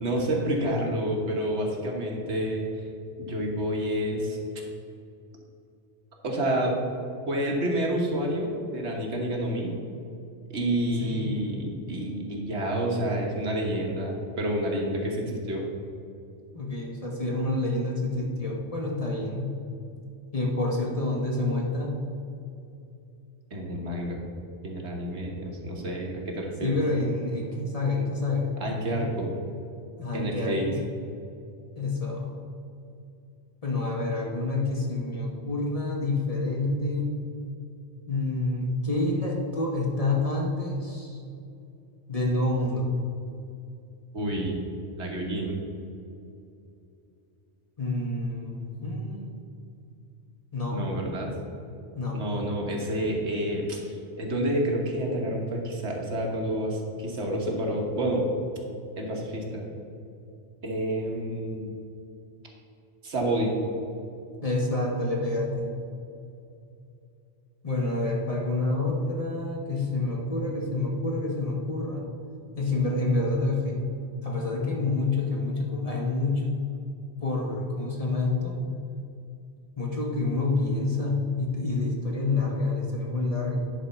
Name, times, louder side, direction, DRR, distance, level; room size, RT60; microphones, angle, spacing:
voice 1, 0.0-2.6 3.2-4.4 6.2-6.8 7.3-9.7 10.5-15.6 23.5-24.2 24.6-26.8 28.6-29.3 30.1-30.7 44.1-44.6 45.0-45.6 50.7-51.3 52.1-58.3 59.0-59.6 60.6-61.7 63.0-63.5, right 1 dB, 70° right, -1 dB, 1.5 m, -29 dB
voice 2, 11.0-11.4 16.5-19.6 20.3-21.9 26.6-28.5 30.0-30.8 31.8-32.3 33.6-37.1 38.1-41.2 42.1-42.9 47.8-49.4 50.5-50.9 51.9-52.2 64.4-65.7 67.6-72.0 72.6-73.9 74.2-76.5 77.2-78.6 79.8-83.6, left 2 dB, 35° left, -2 dB, 1.1 m, -28 dB
10.0 x 4.0 x 5.5 m, 2.6 s
omnidirectional pair, 1.2 m